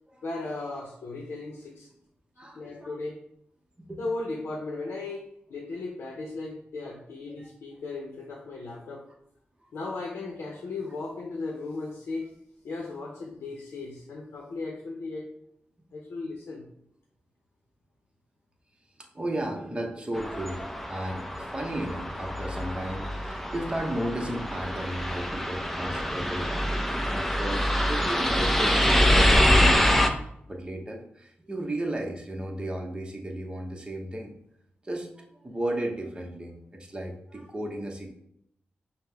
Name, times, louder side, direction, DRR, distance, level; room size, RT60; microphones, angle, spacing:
voice 1, 0.2-1.9 2.5-3.2 4.0-9.1 9.7-12.3 12.6-15.3 15.9-16.7, left 3 dB, 80° left, -1 dB, 0.6 m, -36 dB
voice 2, 2.4-3.0 3.8-4.0 7.3-7.4 9.6-9.7 19.1-26.7 27.1-30.1 30.5-34.3 34.8-38.1, right 1 dB, 25° right, 1 dB, 0.9 m, -34 dB
sound 1, 20.2-30.1, equal, 5° left, 0.5 m, -25 dB
5.4 x 2.1 x 3.4 m, 0.74 s
cardioid pair, 50°, 4 cm